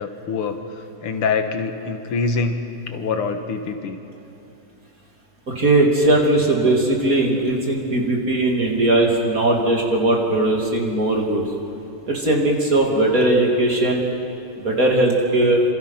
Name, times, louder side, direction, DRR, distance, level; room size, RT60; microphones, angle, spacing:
voice 1, 0.0-4.0, left 4 dB, 80° left, 6 dB, 2.3 m, -25 dB
voice 2, 5.5-11.4 12.1-14.1 14.6-15.6, right 2 dB, 40° right, 0 dB, 3.3 m, -19 dB
27.5 x 26.5 x 5.8 m, 2.8 s
omnidirectional pair, 2.4 m